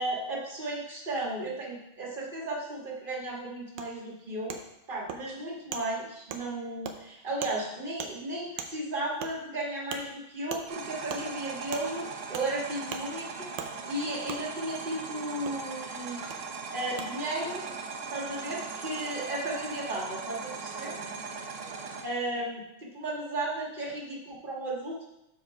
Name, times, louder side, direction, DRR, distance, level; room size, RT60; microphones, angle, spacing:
voice 1, 0.0-4.6 4.9-16.2 16.7-17.6 18.1-20.9 22.0-25.1, right 1 dB, 25° right, -3 dB, 1.7 m, -34 dB
Wood, 3.8-3.9 4.5-4.6 5.1-5.2 5.7-5.8 6.3-6.4 6.8-7.0 7.4-7.6 8.0-8.1 8.6-8.7 9.2-9.3 9.9-10.0 10.5-10.6 11.1-11.2 11.7-11.8 12.3-12.5 12.9-13.0 13.6-13.7 14.3-14.4 15.4-15.6 16.3-16.4 17.0-17.1, right 7 dB, 85° right, 1.6 m, -37 dB
sound 1, 10.7-22.0, right 5 dB, 70° right, 0.7 m, -39 dB
7.0 x 5.0 x 4.9 m, 0.88 s
omnidirectional pair, 2.3 m